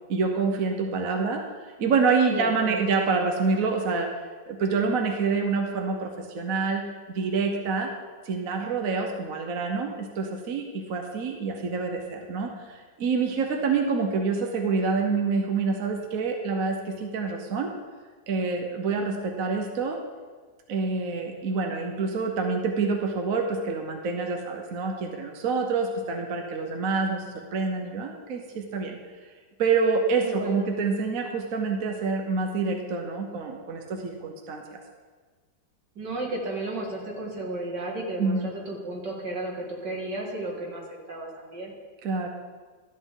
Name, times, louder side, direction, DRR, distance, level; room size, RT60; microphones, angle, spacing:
voice 1, 0.1-4.1 4.5-6.8 7.1-7.9 8.2-17.7 18.3-20.0 20.7-29.0 29.6-34.8 38.2-38.5 42.0-42.3, right 4 dB, 55° right, 3 dB, 1.2 m, -27 dB
voice 2, 2.3-2.8 30.2-30.8 36.0-40.8 41.1-41.7, right 2 dB, 75° right, -1 dB, 2.5 m, -33 dB
13.0 x 8.6 x 3.8 m, 1.5 s
omnidirectional pair, 1.9 m